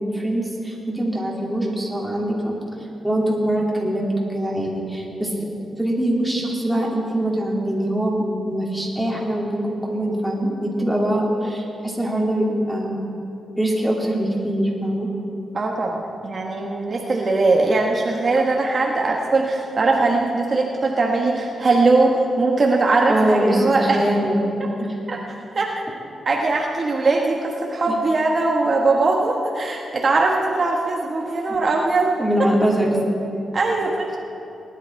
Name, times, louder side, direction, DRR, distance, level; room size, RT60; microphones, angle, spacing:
voice 1, 0.0-2.5 3.0-5.3 5.8-13.1 13.6-15.1 23.1-24.9 32.2-33.0, right 1 dB, ahead, -4 dB, 2.9 m, -23 dB
voice 2, 15.5-24.0 25.1-25.2 25.5-25.7 26.2-32.1 33.5-34.1, right 3 dB, 40° right, 0 dB, 1.2 m, -20 dB
19.0 x 11.0 x 4.6 m, 2.9 s
cardioid pair, 105°, 0 cm